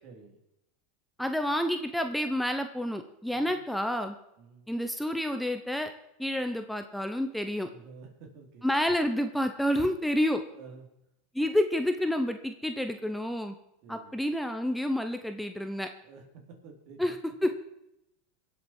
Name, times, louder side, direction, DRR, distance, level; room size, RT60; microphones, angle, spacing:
voice 1, 0.0-0.4 3.3-3.6 4.4-4.7 7.7-8.7 10.5-10.9 13.8-14.2 16.0-17.1 17.5-17.6, right 4 dB, 60° right, 3 dB, 3.7 m, -50 dB
voice 2, 1.2-4.1 4.7-5.9 6.2-7.7 8.6-10.4 11.3-13.5 13.9-15.9 17.0-17.2 17.4-17.5, left 1 dB, ahead, 7 dB, 1.0 m, -29 dB
23.0 x 8.0 x 4.6 m, 0.84 s
supercardioid pair, 120°, 0 cm